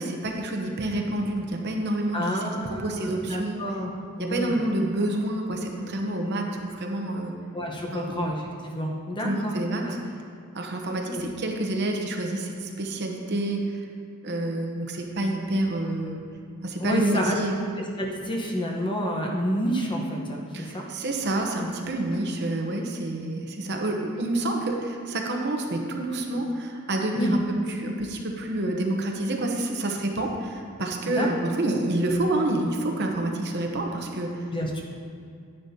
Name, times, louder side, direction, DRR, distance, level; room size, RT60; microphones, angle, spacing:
voice 1, 0.0-2.4 2.7-3.7 4.2-7.3 7.9-8.2 9.2-10.0 10.5-13.7 14.2-16.2 16.6-17.6 20.5-27.4 27.7-34.3, right 1 dB, 50° right, 2 dB, 0.9 m, -28 dB
voice 2, 2.1-3.9 4.2-4.6 7.5-9.6 9.9-10.0 11.1-11.3 16.8-17.4 17.8-20.9 27.1-27.4 31.1-31.3 34.5-34.8, equal, 20° left, -1 dB, 1.0 m, -29 dB
10.5 x 9.7 x 2.8 m, 2.3 s
head